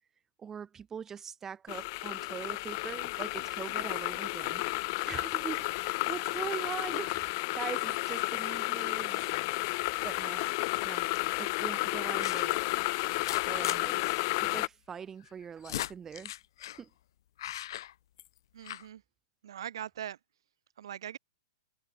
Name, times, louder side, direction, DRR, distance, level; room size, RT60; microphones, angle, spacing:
voice 1, 0.4-4.6 5.0-7.3 7.5-9.6 10.0-10.4 10.8-11.1 11.4-12.6 13.3-16.3 16.8-16.9, right 7 dB, 15° right, 3.4 m, -42 dB
sound 1, 1.7-14.7, left 26 dB, 45° left, 0.6 m, -32 dB
sound 2, 10.0-10.4 11.1-11.3 12.2-12.6 13.1-13.8 14.1-14.2 14.4-14.5 15.3-16.8 17.4-18.4 18.6-18.9, left 13 dB, 65° left, 1.2 m, -39 dB
voice 2, 18.5-19.0 19.4-20.2 20.8-21.2, right 10 dB, 75° right, 4.9 m, -41 dB
hypercardioid pair, 135°, 3 cm